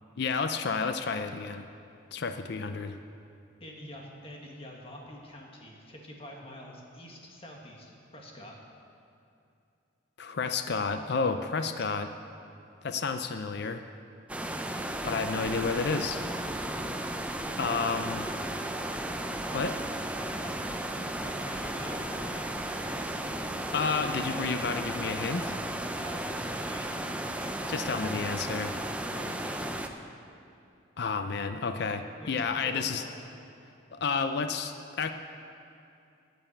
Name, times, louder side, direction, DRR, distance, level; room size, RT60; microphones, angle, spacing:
voice 1, 0.2-1.7 2.1-3.0 10.2-12.1 12.8-13.8 15.0-16.2 17.6-18.3 19.5-19.8 23.7-25.6 27.7-28.8 31.0-33.0 33.9-35.1, left 5 dB, 55° left, 8 dB, 0.5 m, -31 dB
voice 2, 3.6-8.5 20.4-23.2 25.9-28.0 29.1-29.7 32.2-33.1, equal, 30° left, -1 dB, 1.5 m, -46 dB
sound 1, 14.3-29.9, right 1 dB, 5° right, 0.4 m, -34 dB
9.3 x 8.8 x 8.2 m, 2.6 s
head